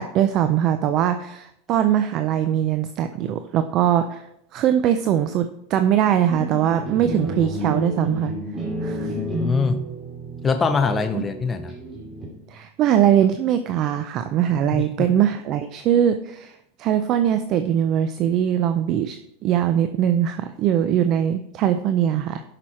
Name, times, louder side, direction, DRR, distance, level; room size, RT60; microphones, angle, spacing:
voice 1, 0.0-4.2 4.5-8.3 8.8-9.1 11.1-11.2 12.5-22.4, right 10 dB, 40° right, 9 dB, 0.5 m, -21 dB
sound 1, 6.3-12.6, right 1 dB, 20° right, 2.7 m, -30 dB
voice 2, 9.0-9.8 10.4-11.7 14.7-15.1, left 5 dB, 15° left, 7 dB, 0.6 m, -23 dB
11.5 x 5.9 x 4.4 m, 0.77 s
supercardioid pair, 140°, 0 cm